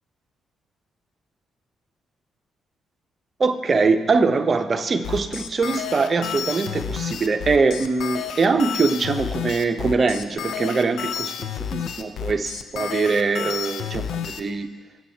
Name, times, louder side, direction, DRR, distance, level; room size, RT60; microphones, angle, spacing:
voice 1, 3.4-14.7, right 4 dB, 40° right, 8 dB, 0.7 m, -22 dB
sound 1, 5.0-14.4, left 8 dB, 75° left, 0.6 m, -30 dB
16.5 x 7.2 x 2.8 m, 1.3 s
cardioid pair, 70°, 0 cm